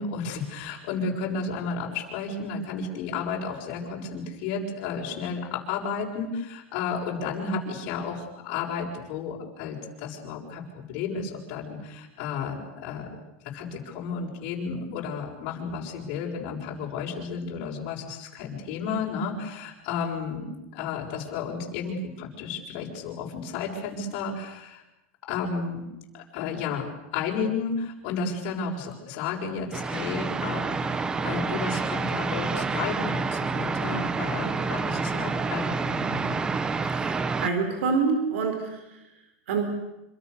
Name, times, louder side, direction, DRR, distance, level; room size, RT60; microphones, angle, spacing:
voice 1, 0.0-13.1 13.4-24.8 25.3-25.8 26.1-26.9 27.1-36.4, left 5 dB, 45° left, -2 dB, 6.7 m, -32 dB
sound 1, 29.7-37.5, right 4 dB, 10° right, 0.9 m, -28 dB
voice 2, 37.4-38.8 39.5-39.7, right 5 dB, 85° right, 6 dB, 4.9 m, -26 dB
27.0 x 26.0 x 6.9 m, 0.92 s
supercardioid pair, 165°, 7 cm